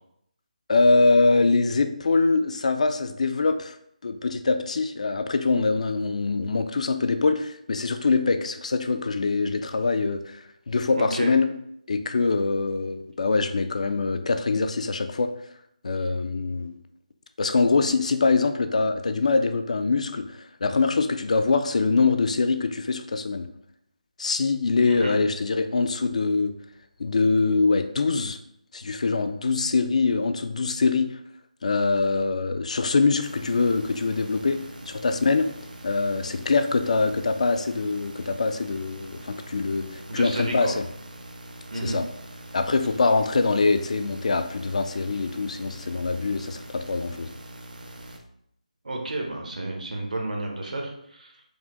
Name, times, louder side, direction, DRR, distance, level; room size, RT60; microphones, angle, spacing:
voice 1, 0.7-3.8 4.0-11.5 11.9-15.3 15.8-16.8 17.4-23.5 24.2-26.6 27.0-28.4 28.7-31.1 31.6-34.6 34.9-35.5 35.8-40.9 41.8-42.0 42.5-47.3, left 3 dB, 55° left, 8 dB, 0.4 m, -23 dB
voice 2, 10.9-11.3 24.8-25.2 40.1-40.7 41.7-42.0 48.8-51.3, right 2 dB, 70° right, 1 dB, 1.0 m, -31 dB
sound 1, 33.2-48.2, right 1 dB, 85° right, 0.6 m, -43 dB
4.9 x 2.2 x 3.6 m, 0.74 s
figure-of-eight pair, 160°, 4 cm